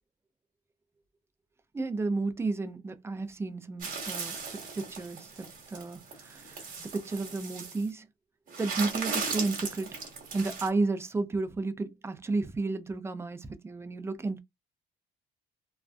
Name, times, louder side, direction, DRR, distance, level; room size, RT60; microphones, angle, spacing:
voice 1, 1.7-8.1 8.6-10.0 10.3-14.4, right 3 dB, 15° right, 0.4 m, -32 dB
sound 1, 3.8-7.9 8.5-10.7, right 5 dB, 55° right, 1.1 m, -37 dB
2.5 x 2.2 x 2.3 m
cardioid pair, 110°, 17 cm